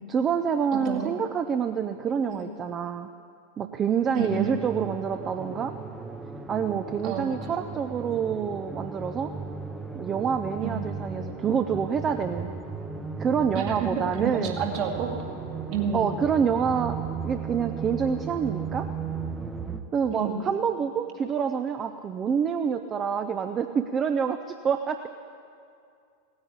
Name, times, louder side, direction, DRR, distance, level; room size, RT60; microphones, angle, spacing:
voice 1, 0.1-3.1 3.6-5.7 6.5-9.3 9.9-12.5 13.2-14.6 15.9-17.0 17.2-18.9 19.9-25.1, right 7 dB, 25° right, 8 dB, 0.6 m, -27 dB
voice 2, 0.7-1.1 2.3-2.5 4.1-4.6 7.0-7.4 10.6-10.8 13.5-15.1 15.7-16.1 20.1-20.4, right 7 dB, 45° right, 1 dB, 2.2 m, -30 dB
sound 1, 4.2-19.8, right 4 dB, 10° right, 0.9 m, -36 dB
17.0 x 9.7 x 8.6 m, 2.4 s
figure-of-eight pair, 90°, 0 cm